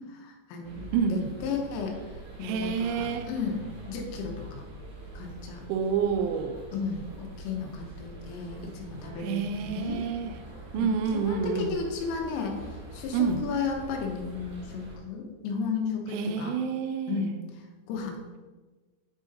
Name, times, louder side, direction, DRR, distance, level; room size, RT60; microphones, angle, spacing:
voice 1, 0.2-2.0 2.4-4.6 5.2-5.7 6.7-10.0 10.7-16.6 17.1-17.3 17.9-18.2, left 5 dB, 85° left, 1 dB, 3.7 m, -34 dB
sound 1, 0.6-15.0, right 2 dB, 60° right, 4.0 m, -44 dB
voice 2, 0.9-1.3 2.4-3.3 5.7-6.6 9.2-10.3 10.7-11.8 13.1-13.4 16.1-17.2, right 6 dB, 85° right, 6 dB, 2.9 m, -28 dB
9.7 x 3.9 x 4.0 m, 1.3 s
omnidirectional pair, 5.8 m